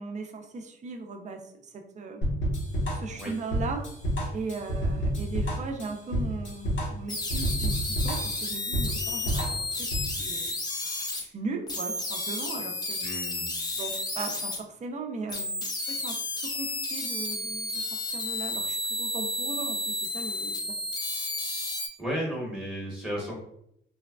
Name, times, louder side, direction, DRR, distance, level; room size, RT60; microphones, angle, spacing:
voice 1, 0.0-2.2 2.9-3.9 4.3-9.9 10.2-10.5 11.2-13.0 13.8-20.8, right 3 dB, 35° right, 5 dB, 0.5 m, -38 dB
sound 1, 2.2-10.1, equal, 65° left, 1.0 m, -29 dB
sound 2, 7.1-11.2 11.7-14.6 15.3-21.9, left 2 dB, 20° left, 0.5 m, -32 dB
voice 2, 13.0-13.5 22.0-23.3, equal, 5° right, -4 dB, 0.8 m, -33 dB
3.2 x 2.1 x 2.3 m, 0.73 s
cardioid pair, 90°, 20 cm